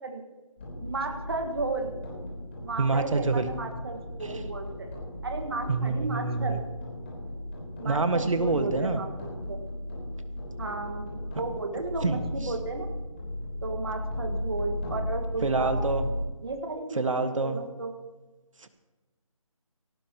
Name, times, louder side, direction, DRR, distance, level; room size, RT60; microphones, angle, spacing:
sound 1, 0.6-16.2, left 1 dB, 20° left, 3.6 m, -36 dB
voice 1, 0.8-1.9 2.6-4.9 5.2-6.6 7.8-9.6 10.6-12.9 13.6-15.8 16.4-17.9, right 3 dB, 45° right, 4 dB, 1.7 m, -34 dB
voice 2, 2.8-3.5 4.2-4.4 5.7-6.6 7.8-9.0 12.0-12.5 15.4-16.1 16.9-17.6 18.6-18.7, right 3 dB, 65° right, 8 dB, 1.6 m, -27 dB
18.0 x 18.0 x 3.0 m, 1.2 s
figure-of-eight pair, 175°, 18 cm